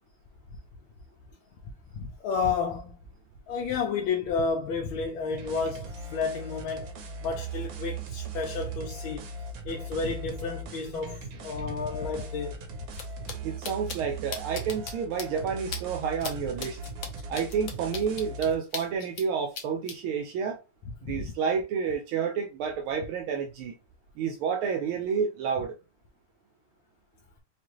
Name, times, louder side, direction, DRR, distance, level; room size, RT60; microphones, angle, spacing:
voice 1, 1.9-3.0 3.5-6.9 7.2-9.3 9.6-12.7 21.0-21.2, left 5 dB, 80° left, 1.5 m, -31 dB
sound 1, 5.3-18.6, right 3 dB, 60° right, 1.0 m, -39 dB
sound 2, 12.9-13.0 13.3-13.4 13.6-14.0 14.3-14.9 15.2-15.3 15.7-15.8 16.2-16.3 16.6-19.2 19.5-19.9, left 6 dB, 60° left, 0.8 m, -36 dB
voice 2, 13.4-16.8 17.3-20.6 21.0-23.7 24.2-25.7, right 6 dB, 85° right, 1.6 m, -30 dB
4.9 x 2.4 x 3.0 m
omnidirectional pair, 2.3 m